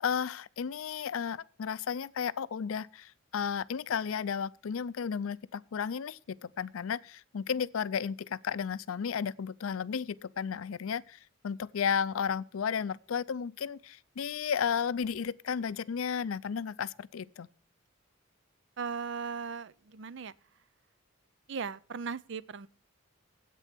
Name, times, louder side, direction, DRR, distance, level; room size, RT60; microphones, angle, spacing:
voice 1, 0.0-17.5, left 7 dB, 85° left, 0.4 m, -33 dB
voice 2, 18.8-20.3 21.5-22.7, right 5 dB, 60° right, 0.5 m, -37 dB
10.0 x 8.3 x 5.9 m
head